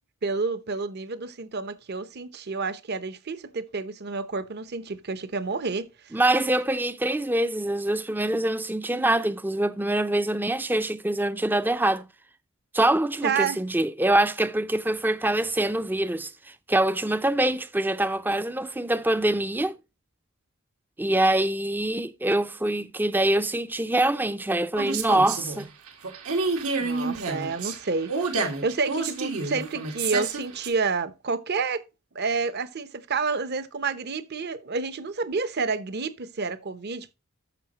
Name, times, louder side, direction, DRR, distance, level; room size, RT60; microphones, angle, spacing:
voice 1, 0.2-5.9 13.2-13.6 26.8-31.8 32.1-37.1, right 4 dB, 50° right, 0.8 m, -29 dB
voice 2, 6.1-12.0 12.7-16.3 16.7-19.7 21.0-25.7, right 1 dB, 10° right, 0.4 m, -24 dB
sound 1, 24.8-30.7, right 4 dB, 85° right, 2.0 m, -29 dB
13.0 x 5.6 x 2.9 m
head